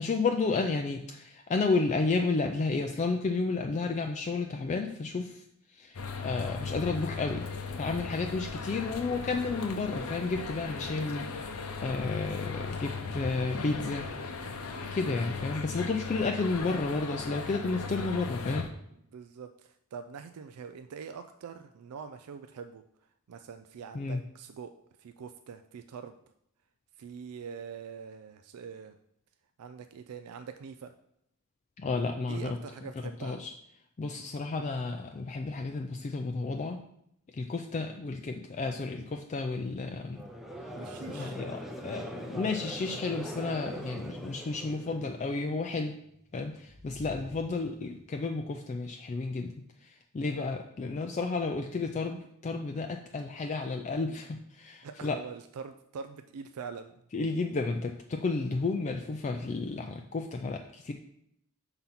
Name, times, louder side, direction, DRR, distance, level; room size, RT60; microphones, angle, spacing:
voice 1, 0.0-5.4 5.7-7.5 7.8-14.1 14.9-18.7 23.9-24.2 31.8-32.6 33.2-33.5 34.0-36.8 37.3-40.2 41.1-45.9 46.3-49.5 49.8-55.2 57.1-60.9, left 3 dB, 30° left, 4 dB, 0.4 m, -32 dB
sound 1, 5.9-18.7, left 4 dB, 75° left, 0.8 m, -37 dB
voice 2, 19.1-22.8 23.3-24.7 25.0-26.2 27.0-29.0 29.6-30.9 32.3-33.4 40.7-41.4 54.8-57.0, right 6 dB, 75° right, 8 dB, 0.4 m, -44 dB
Conversation / Crowd, 40.1-45.4, right 1 dB, ahead, 0.7 m, -42 dB
sound 2, 46.0-48.3, left 1 dB, 30° right, 0.8 m, -51 dB
5.8 x 3.9 x 5.6 m, 0.75 s
head